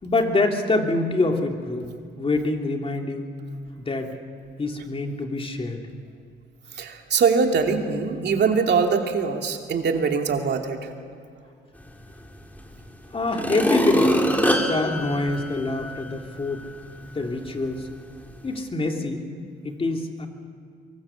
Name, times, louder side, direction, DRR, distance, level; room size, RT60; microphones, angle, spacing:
voice 1, 0.0-3.3 3.8-4.1 4.6-5.8 13.1-14.3 14.6-16.7 17.1-17.9 18.4-19.2 19.6-20.3, left 2 dB, 30° left, 3 dB, 2.9 m, -25 dB
voice 2, 6.7-10.9, right 5 dB, 60° right, 3 dB, 2.7 m, -22 dB
sound 1, 12.6-12.7 13.2-16.1 16.6-16.7, equal, 10° left, 2.8 m, -23 dB
24.5 x 23.5 x 7.2 m, 2.3 s
cardioid pair, 90°, 20 cm